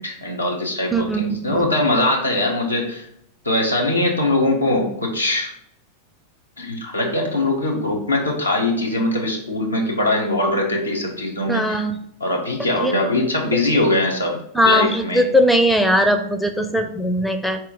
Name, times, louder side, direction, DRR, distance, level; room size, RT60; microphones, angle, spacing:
voice 1, 0.0-3.1 3.4-5.5 6.6-11.8 12.2-14.3 14.6-15.2, left 1 dB, 80° left, -1 dB, 0.8 m, -21 dB
voice 2, 0.9-1.6 11.5-12.0 12.8-12.9 14.5-17.6, equal, 5° left, 6 dB, 0.5 m, -19 dB
4.3 x 3.0 x 3.5 m, 0.71 s
figure-of-eight pair, 90°, 0 cm